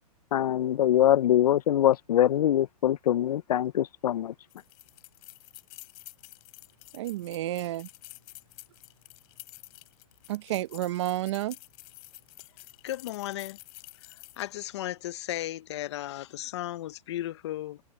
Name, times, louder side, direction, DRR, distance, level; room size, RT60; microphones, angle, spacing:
voice 1, 0.3-4.3, left 11 dB, 80° left, 0.5 m, -23 dB
sound 1, 4.5-14.6, left 30 dB, 30° left, 2.9 m, -50 dB
voice 2, 6.9-7.9 10.3-11.6, right 14 dB, 45° right, 0.8 m, -31 dB
voice 3, 12.8-13.6 14.4-17.8, left 14 dB, 45° left, 0.8 m, -35 dB
hypercardioid pair, 160°, 20 cm